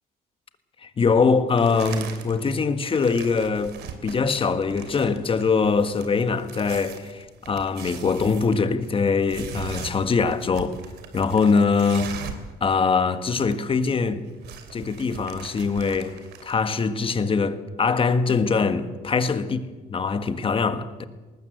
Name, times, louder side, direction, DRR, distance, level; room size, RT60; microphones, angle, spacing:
voice 1, 0.8-3.7 4.0-10.8 11.1-12.1 12.6-14.2 14.7-19.6 19.9-21.1, left 5 dB, 30° left, 1.6 m, -23 dB
sound 1, 1.6-2.5 2.8-12.5 12.8-12.9 13.1-13.8 14.1-16.6, right 7 dB, 75° right, 2.9 m, -40 dB
19.5 x 19.5 x 8.1 m
cardioid pair, 110°, 17 cm